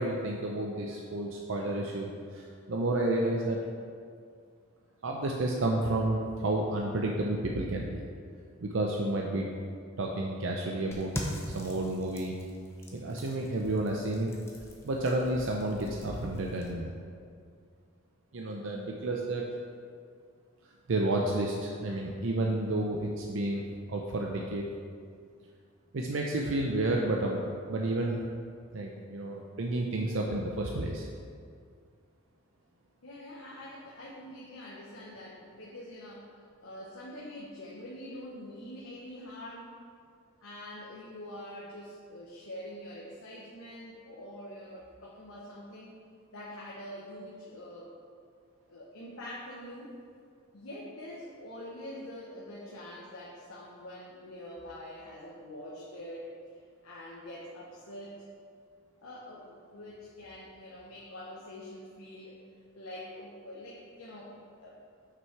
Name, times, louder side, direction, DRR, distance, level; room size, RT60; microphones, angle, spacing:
voice 1, 0.0-3.6 5.0-8.0 8.6-9.5 10.0-11.1 11.5-12.4 12.9-14.3 14.8-16.9 18.3-19.5 20.9-24.6 25.9-27.4 27.7-28.2 28.7-31.1, right 2 dB, 65° right, 0 dB, 0.6 m, -31 dB
sound 1, 10.9-16.7, equal, 10° left, 0.7 m, -42 dB
voice 2, 33.0-36.3 36.6-39.7 40.4-45.9 46.3-47.9 48.7-49.9 50.5-56.3 56.8-58.2 59.0-62.4 62.7-64.3 64.6-64.8, left 1 dB, 85° left, -6 dB, 1.1 m, -45 dB
6.3 x 6.1 x 4.6 m, 2.2 s
head